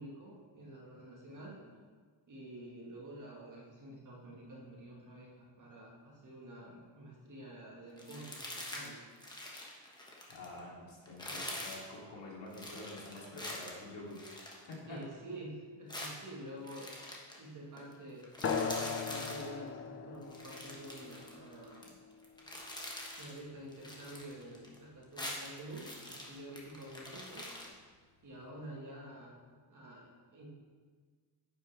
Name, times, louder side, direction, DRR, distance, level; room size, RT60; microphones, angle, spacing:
voice 1, 0.0-1.6 2.3-9.1 11.3-11.5 14.9-16.9 17.4-18.3 18.7-22.0 23.2-27.5 28.2-29.3 29.7-30.5, right 1 dB, 40° right, -4 dB, 1.7 m, -49 dB
sound 1, 8.0-8.9 9.2-10.6 11.1-11.9 12.5-15.2 15.9-17.4 17.8-17.9 18.2-19.5 20.2-21.9 22.2-23.4 23.7-24.8 25.0-27.7, left 1 dB, 10° left, 1.2 m, -45 dB
voice 2, 10.3-14.3 14.7-15.0, left 2 dB, 70° left, -4 dB, 2.9 m, -47 dB
sound 2, 18.4-23.5, left 5 dB, 30° left, 0.5 m, -40 dB
10.0 x 8.2 x 3.4 m, 1.6 s
cardioid pair, 160°, 47 cm